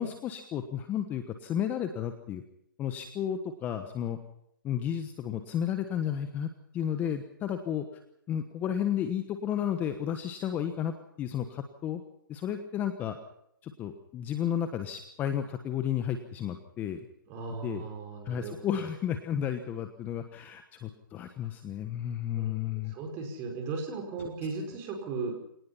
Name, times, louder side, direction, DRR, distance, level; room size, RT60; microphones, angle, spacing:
voice 1, 0.0-2.4 2.8-4.2 4.6-6.5 6.7-7.8 8.3-12.0 12.3-13.2 13.6-17.1 17.6-17.9 18.2-22.9, left 9 dB, 15° left, 8 dB, 1.2 m, -32 dB
voice 2, 17.3-18.9 22.3-25.4, right 4 dB, 20° right, 3 dB, 5.0 m, -37 dB
24.5 x 18.5 x 5.6 m, 0.75 s
hypercardioid pair, 150°, 12 cm